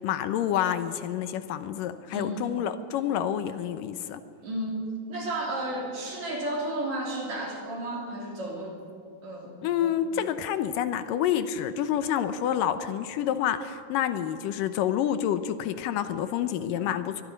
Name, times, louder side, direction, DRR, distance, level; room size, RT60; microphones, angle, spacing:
voice 1, 0.0-4.2 9.6-17.2, left 10 dB, 80° left, 11 dB, 2.4 m, -28 dB
voice 2, 2.1-2.5 4.4-8.8 9.2-10.0, right 1 dB, 55° right, -1 dB, 4.6 m, -33 dB
23.5 x 21.5 x 5.2 m, 2.3 s
omnidirectional pair, 4.0 m